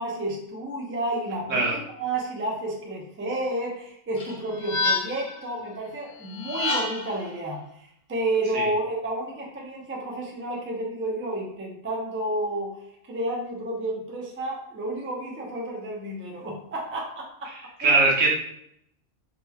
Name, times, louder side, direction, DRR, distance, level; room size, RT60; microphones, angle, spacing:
voice 1, 0.0-12.7 13.0-17.2 17.8-17.9, right 1 dB, 20° right, -2 dB, 0.3 m, -31 dB
sound 1, 4.2-5.4 6.3-7.2, left 2 dB, 70° left, 0.9 m, -28 dB
voice 2, 17.8-18.3, right 3 dB, 90° right, -3 dB, 1.3 m, -20 dB
3.2 x 3.0 x 2.3 m, 0.72 s
omnidirectional pair, 1.3 m